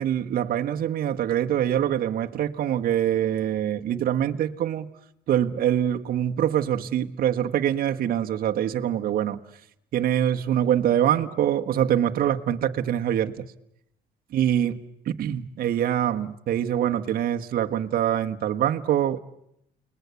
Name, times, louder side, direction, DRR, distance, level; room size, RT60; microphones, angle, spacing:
voice 1, 0.0-4.9 5.3-9.4 9.9-13.5 14.3-14.8 15.0-19.2, right 10 dB, 60° right, 1.4 m, -24 dB
30.0 x 20.5 x 8.2 m
cardioid pair, 110°, 17 cm